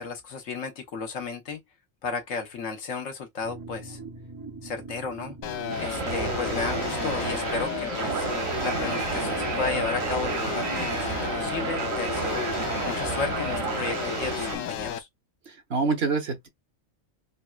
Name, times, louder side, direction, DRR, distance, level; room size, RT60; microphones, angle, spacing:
voice 1, 0.0-1.6 2.0-4.0 4.6-5.4 5.8-8.3 8.6-12.4 12.9-15.1, left 4 dB, 75° left, 1.3 m, -33 dB
sound 1, 3.4-11.4, right 4 dB, 20° right, 0.7 m, -43 dB
sound 2, 5.4-15.0, left 9 dB, 90° left, 1.0 m, -33 dB
sound 3, 5.7-14.6, right 6 dB, 90° right, 1.2 m, -31 dB
voice 2, 15.5-16.5, right 4 dB, 55° right, 1.1 m, -26 dB
4.0 x 2.2 x 2.3 m
omnidirectional pair, 1.3 m